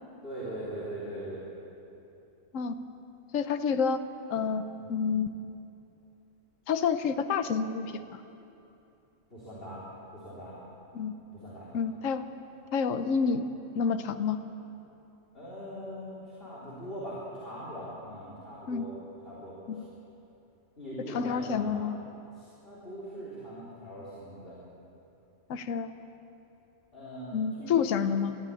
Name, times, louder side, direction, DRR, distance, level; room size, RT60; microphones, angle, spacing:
voice 1, 0.2-1.4 9.3-9.8 10.1-10.6 11.2-11.8 15.3-18.9 19.2-19.8 20.8-21.8 22.3-24.6 26.9-28.0, right 1 dB, 45° left, -8 dB, 4.2 m, -41 dB
voice 2, 3.3-4.0 4.3-5.3 6.7-8.2 10.9-11.2 11.7-12.3 12.7-13.5 13.7-14.4 18.7-18.8 19.7-19.9 21.1-21.9 25.5-25.9 27.3-28.4, left 6 dB, 75° left, 9 dB, 1.2 m, -29 dB
22.0 x 14.0 x 8.6 m, 2.8 s
omnidirectional pair, 1.4 m